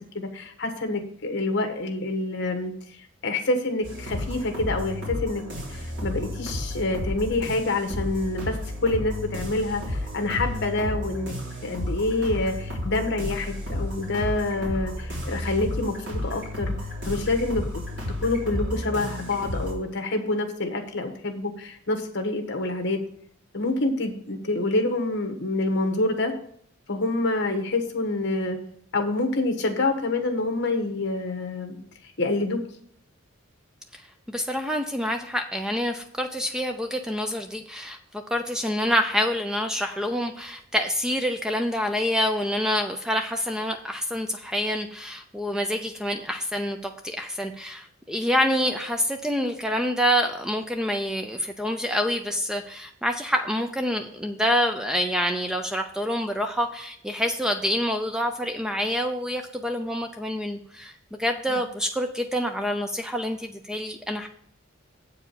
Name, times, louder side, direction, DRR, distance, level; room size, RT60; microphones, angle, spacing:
voice 1, 0.0-2.7 3.2-5.4 5.7-8.6 8.8-11.4 11.6-16.7 17.0-17.7 18.2-23.0 23.5-26.3 26.9-28.6 28.9-31.8 32.2-32.6 61.5-61.6, left 2 dB, 55° left, 4 dB, 1.3 m, -27 dB
sound 1, 3.8-19.7, left 1 dB, 55° right, 3.5 m, -32 dB
voice 2, 34.3-64.3, equal, 5° right, 5 dB, 0.4 m, -27 dB
8.2 x 4.8 x 6.9 m, 0.66 s
head